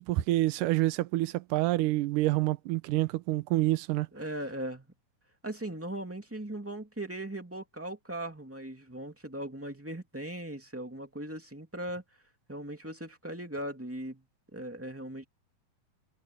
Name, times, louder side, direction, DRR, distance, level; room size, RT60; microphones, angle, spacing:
voice 1, 0.0-4.1, right 17 dB, 80° right, 2.3 m, -27 dB
voice 2, 4.1-4.9 5.4-12.0 12.5-14.2 14.5-15.2, right 1 dB, 5° right, 1.9 m, -39 dB
omnidirectional pair, 3.9 m